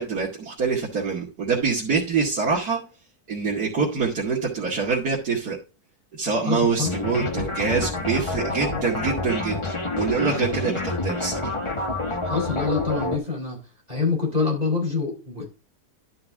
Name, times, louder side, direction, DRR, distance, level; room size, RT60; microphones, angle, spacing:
voice 1, 0.0-2.8 3.3-5.6 6.1-11.5, right 5 dB, 80° right, -6 dB, 2.8 m, -25 dB
voice 2, 6.4-6.9 12.3-13.6 13.9-15.4, left 4 dB, 25° right, 0 dB, 4.2 m, -25 dB
sound 1, 6.8-13.2, left 2 dB, 20° left, 1.2 m, -28 dB
11.5 x 5.8 x 3.6 m, 0.32 s
omnidirectional pair, 1.6 m